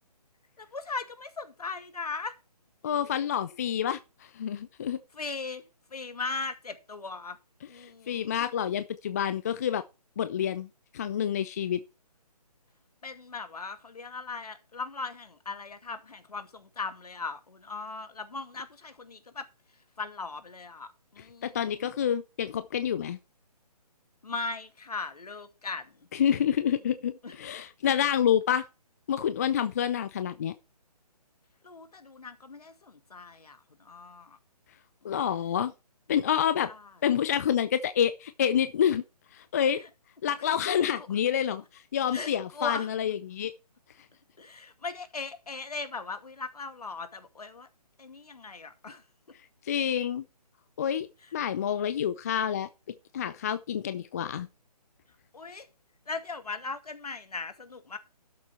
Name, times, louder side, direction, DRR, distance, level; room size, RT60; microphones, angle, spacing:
voice 1, 0.6-2.3 2.8-3.2 5.1-5.6 5.9-7.4 7.7-8.5 13.0-19.5 20.0-21.9 24.2-25.9 27.2-27.6 31.6-34.4 35.0-35.2 36.7-36.8 40.4-41.1 42.1-42.9 44.4-47.7 48.0-49.0 55.3-55.7 56.1-58.0, left 4 dB, 70° left, 2.4 m, -39 dB
voice 2, 2.8-4.0 4.3-5.0 7.8-9.8 10.2-10.7 10.9-11.8 21.2-23.2 26.1-28.7 29.1-30.5 35.0-35.7 36.1-36.7 37.0-39.0 39.3-39.8 40.2-43.5 49.6-50.2 50.8-51.1 51.3-52.7 53.1-54.5, left 9 dB, 25° left, 0.5 m, -28 dB
12.5 x 7.3 x 4.4 m
figure-of-eight pair, 145°, 21 cm